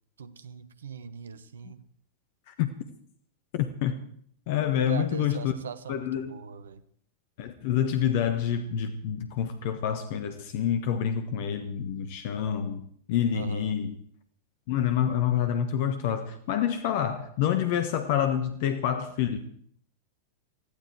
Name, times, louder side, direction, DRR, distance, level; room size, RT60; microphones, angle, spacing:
voice 1, 0.2-1.9 4.9-6.8 13.3-13.8, right 6 dB, 70° right, 15 dB, 1.1 m, -41 dB
voice 2, 3.5-3.9 4.5-5.5 5.9-6.3 7.4-12.8 13.1-14.0 14.7-19.4, left 9 dB, 50° left, 8 dB, 1.4 m, -27 dB
20.5 x 14.5 x 4.7 m, 0.62 s
figure-of-eight pair, 90°, 0 cm